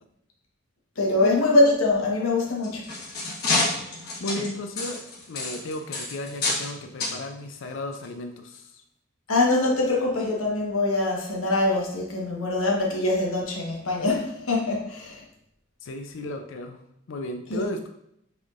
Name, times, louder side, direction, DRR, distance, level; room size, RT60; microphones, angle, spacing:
voice 1, 1.0-2.9 9.3-15.2 17.5-17.7, left 2 dB, 85° left, -1 dB, 1.1 m, -23 dB
sound 1, 2.5-6.7 7.0-7.2 7.9-8.0 8.5-8.6, left 2 dB, 50° left, 1.3 m, -28 dB
voice 2, 4.2-5.0 5.3-8.8 15.8-16.8 17.1-17.9, left 1 dB, 65° left, 5 dB, 0.4 m, -34 dB
6.0 x 3.5 x 2.5 m, 0.76 s
head